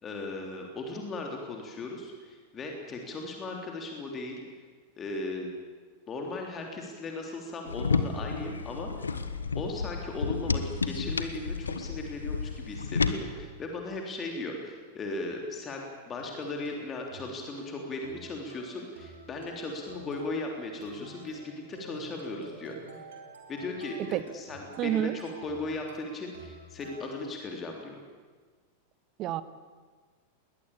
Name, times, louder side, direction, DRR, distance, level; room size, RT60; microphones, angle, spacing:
voice 1, 0.0-4.4 5.0-5.5 6.1-9.2 9.6-22.7 23.5-28.0, left 2 dB, 25° left, 1 dB, 3.4 m, -37 dB
sound 1, 7.7-13.1, left 4 dB, 75° left, 1.4 m, -31 dB
sound 2, 15.8-27.2, right 3 dB, 65° right, 5.0 m, -49 dB
voice 2, 24.8-25.2 29.2-29.4, right 12 dB, 35° right, 14 dB, 1.3 m, -28 dB
21.0 x 20.0 x 8.6 m, 1.5 s
figure-of-eight pair, 90°, 0 cm